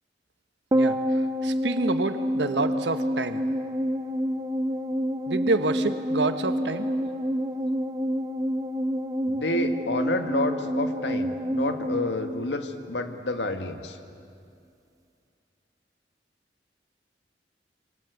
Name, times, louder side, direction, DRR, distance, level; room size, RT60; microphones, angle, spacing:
sound 1, 0.7-13.2 13.5-13.6, equal, 20° right, 0.7 m, -28 dB
voice 1, 0.7-3.4 5.3-6.9, right 3 dB, 85° right, 9 dB, 1.2 m, -28 dB
voice 2, 9.3-14.0, left 2 dB, 85° left, 7 dB, 1.8 m, -29 dB
27.0 x 26.0 x 8.2 m, 2.5 s
head